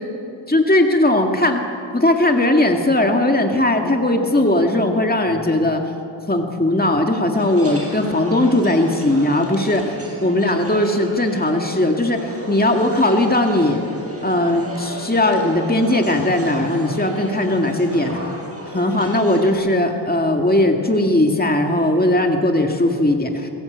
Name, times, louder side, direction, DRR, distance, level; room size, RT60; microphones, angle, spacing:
voice 1, 0.5-1.6 1.9-5.8 6.3-9.8 10.2-13.8 14.2-18.2 18.7-23.5, left 1 dB, 20° left, 3 dB, 2.1 m, -18 dB
sound 1, 7.3-19.5, right 1 dB, 30° right, 6.1 m, -34 dB
28.5 x 18.0 x 8.1 m, 2.6 s
wide cardioid pair, 65°, 46 cm